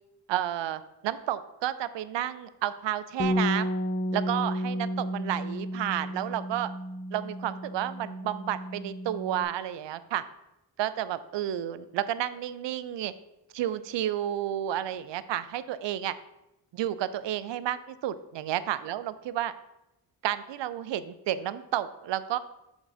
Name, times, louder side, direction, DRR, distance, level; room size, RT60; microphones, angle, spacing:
voice 1, 0.3-3.7 4.1-6.7 7.1-10.2 10.8-13.1 13.5-16.2 16.7-19.5 20.2-22.4, right 12 dB, 75° right, 15 dB, 0.5 m, -31 dB
Bass guitar, 3.2-9.4, equal, 25° left, 1.0 m, -32 dB
7.2 x 3.6 x 5.0 m, 0.91 s
cardioid pair, 55°, 44 cm